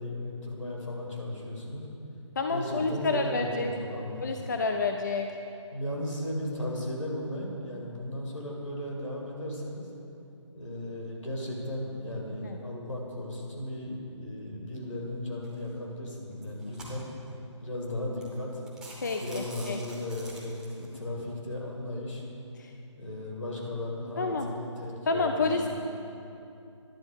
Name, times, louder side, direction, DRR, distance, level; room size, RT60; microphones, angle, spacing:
voice 1, 0.0-1.9 2.5-4.3 5.7-9.9 10.5-17.0 17.6-18.6 19.2-22.2 23.0-25.7, left 1 dB, 80° left, -2 dB, 2.4 m, -36 dB
voice 2, 2.4-3.7 4.2-5.3 12.4-12.6 19.0-19.8 22.6-22.7 24.2-24.5 25.1-25.7, left 3 dB, 35° left, 4 dB, 0.4 m, -29 dB
sound 1, 15.4-15.7 16.3-17.3 17.8-17.9 18.2-18.4 18.7-20.8, right 1 dB, 5° right, 0.8 m, -46 dB
10.5 x 4.3 x 7.7 m, 2.7 s
figure-of-eight pair, 150°, 16 cm